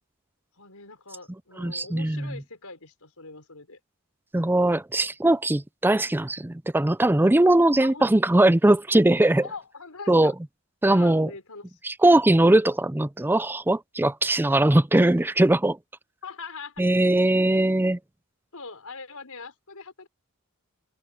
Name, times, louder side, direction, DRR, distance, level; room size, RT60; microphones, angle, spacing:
voice 1, 0.6-3.8 7.8-8.1 9.4-10.3 10.9-11.8 16.2-16.8 18.5-20.1, left 4 dB, 75° left, 5.1 m, -42 dB
voice 2, 1.6-2.3 4.3-9.4 10.1-10.3 10.8-11.3 11.8-15.8 16.8-18.0, right 1 dB, 10° right, 0.4 m, -20 dB
head